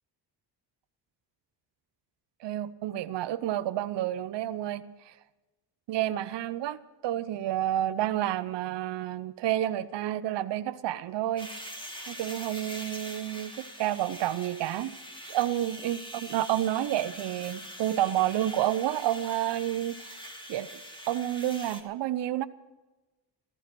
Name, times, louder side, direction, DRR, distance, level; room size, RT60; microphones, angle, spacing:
voice 1, 2.4-5.1 5.9-11.5 12.1-14.9 15.3-20.1 20.5-20.7 21.1-22.5, right 13 dB, 70° right, 12 dB, 0.8 m, -30 dB
sound 1, 11.4-21.8, equal, 10° left, 2.3 m, -43 dB
15.0 x 14.5 x 6.0 m, 1.1 s
cardioid pair, 85°, 44 cm